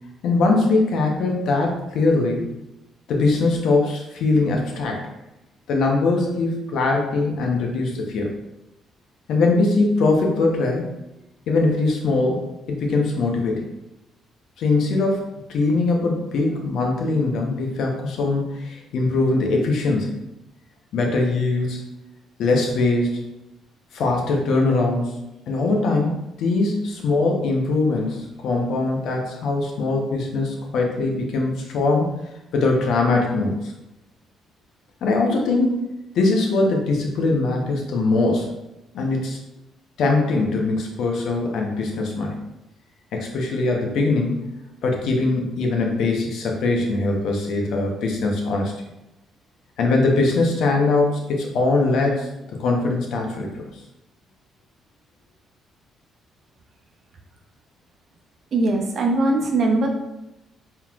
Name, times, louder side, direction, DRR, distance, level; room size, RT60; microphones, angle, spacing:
voice 1, 0.2-2.4 3.1-5.0 5.7-8.3 9.3-10.9 11.5-12.4 12.7-13.7 14.6-20.1 20.9-21.8 22.4-23.2 23.9-25.1 25.5-32.1 32.5-33.7 35.0-35.8 36.1-38.5 38.9-39.4 40.0-42.4 43.1-44.4 44.8-48.7 49.8-52.3 52.6-53.6, left 3 dB, 70° left, 1 dB, 0.9 m, -21 dB
voice 2, 58.5-59.9, right 2 dB, 55° right, 2 dB, 0.8 m, -20 dB
4.3 x 3.8 x 2.5 m, 0.93 s
supercardioid pair, 65°, 0 cm